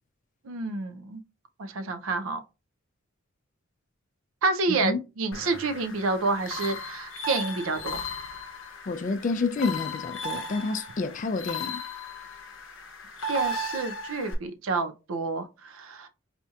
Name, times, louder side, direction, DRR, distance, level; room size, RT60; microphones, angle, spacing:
voice 1, 0.4-1.2 1.6-2.4 4.4-8.0 13.3-16.1, right 3 dB, 85° right, 0.5 m, -29 dB
voice 2, 4.7-5.0 8.9-11.8, left 3 dB, 40° left, 0.4 m, -29 dB
sound 1, 5.3-14.3, left 1 dB, 70° left, 0.7 m, -36 dB
4.2 x 2.8 x 2.3 m
head